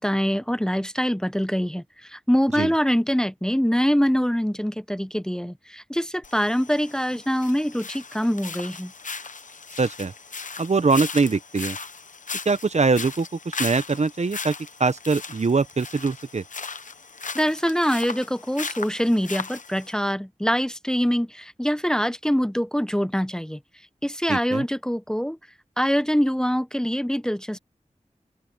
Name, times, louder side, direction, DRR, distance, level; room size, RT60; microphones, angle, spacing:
voice 1, 0.0-1.8 2.1-8.9 17.3-23.6 24.0-25.4 25.8-27.6, equal, 5° left, 0.8 m, -24 dB
sound 1, 6.2-19.9, left 4 dB, 75° left, 1.0 m, -37 dB
voice 2, 9.8-10.1 10.6-11.8 12.5-14.5 14.8-16.4 24.3-24.6, right 4 dB, 55° right, 0.9 m, -23 dB
open air
wide cardioid pair, 75°, 13 cm